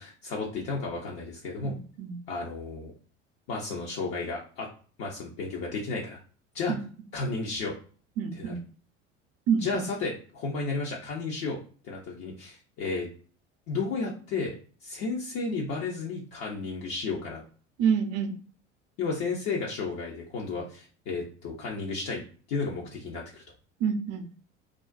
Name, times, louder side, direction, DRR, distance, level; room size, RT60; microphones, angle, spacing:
voice 1, 0.0-1.7 2.3-2.9 3.5-4.7 5.0-6.2 6.5-6.7 7.1-7.8 8.3-8.5 9.6-11.6 11.8-13.1 13.7-14.6 14.8-17.4 19.0-22.2 22.5-23.4, left 4 dB, 40° left, -2 dB, 0.6 m, -33 dB
voice 2, 1.6-2.2 6.7-6.8 8.2-8.6 9.5-9.8 17.8-18.3 23.8-24.2, right 7 dB, 40° right, 7 dB, 0.5 m, -27 dB
2.4 x 2.1 x 2.4 m, 0.40 s
figure-of-eight pair, 70°, 36 cm